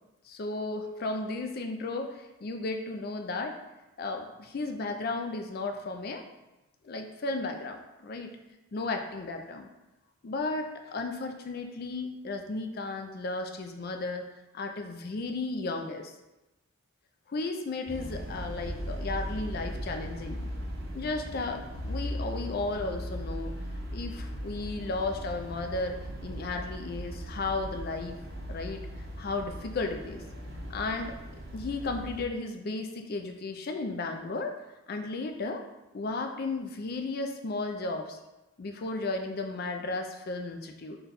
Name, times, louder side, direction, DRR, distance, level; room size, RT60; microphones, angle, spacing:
voice 1, 0.3-3.6 4.0-6.2 6.8-8.3 8.7-9.7 10.2-14.3 14.5-16.1 17.3-20.4 20.9-23.5 23.9-28.1 28.5-28.8 29.2-30.2 30.7-31.2 31.5-34.6 34.9-35.6 35.9-38.2 38.6-41.0, left 3 dB, 45° left, 4 dB, 0.4 m, -34 dB
sound 1, 17.9-32.2, equal, 45° right, 0.6 m, -38 dB
3.9 x 2.3 x 4.0 m, 1.0 s
head